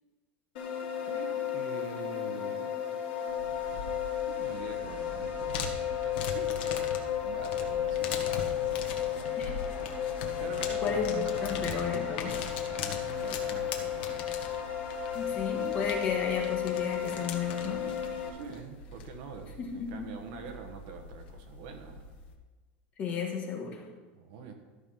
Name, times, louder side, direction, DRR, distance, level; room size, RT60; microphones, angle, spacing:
sound 1, 0.6-18.3, left 9 dB, 60° left, 3.1 m, -33 dB
voice 1, 1.0-2.7 4.4-6.9 7.2-8.6 10.4-11.5 12.6-14.5 18.3-22.1 24.1-24.5, right 5 dB, 45° right, 5 dB, 1.3 m, -45 dB
sound 2, 3.3-22.3, left 5 dB, 80° left, 1.5 m, -41 dB
voice 2, 10.8-12.5 15.1-17.9 19.6-20.1 23.0-23.9, left 5 dB, 25° left, 2 dB, 1.2 m, -33 dB
13.5 x 5.4 x 5.6 m, 1.3 s
supercardioid pair, 180°, 6 cm